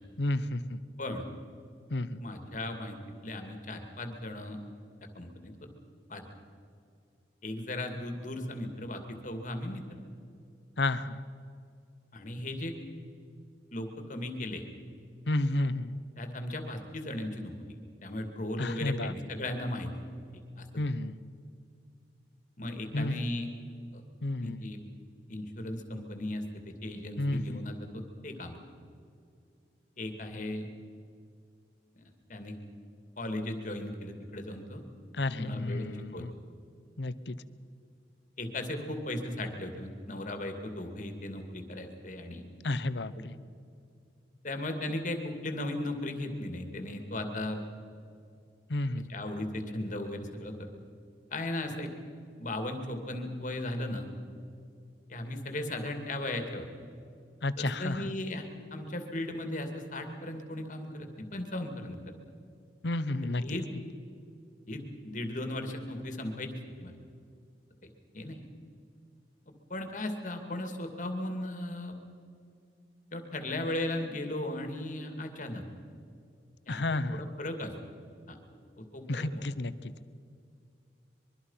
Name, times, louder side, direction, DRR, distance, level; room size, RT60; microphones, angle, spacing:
voice 1, 0.2-0.8 1.9-2.2 10.8-11.2 15.3-16.0 18.6-19.1 20.8-21.2 22.9-23.3 24.2-24.7 27.2-27.6 35.1-36.3 37.0-37.4 42.6-43.4 48.7-49.1 57.4-58.1 62.8-63.6 76.7-77.3 79.1-79.9, left 2 dB, 75° left, 15 dB, 0.9 m, -31 dB
voice 2, 2.2-3.0 3.2-4.6 5.1-5.7 6.1-6.3 7.4-10.0 12.1-12.7 13.7-14.6 16.2-17.5 18.0-19.9 20.6-20.8 22.6-23.5 23.9-24.0 24.4-24.8 25.3-28.6 30.0-30.7 31.9-32.6 33.2-34.8 35.3-35.9 36.1-36.2 38.4-42.4 44.4-47.6 49.1-50.5 51.3-51.9 52.4-54.1 55.1-56.7 57.6-58.4 58.7-62.0 63.4-63.7 64.7-66.5 66.8-66.9 68.1-68.5 69.7-71.9 73.1-75.6 76.7-76.8 77.1-77.7 78.3-78.4 78.8-79.4, left 1 dB, 45° left, 5 dB, 2.5 m, -36 dB
24.0 x 23.0 x 5.7 m, 2.4 s
head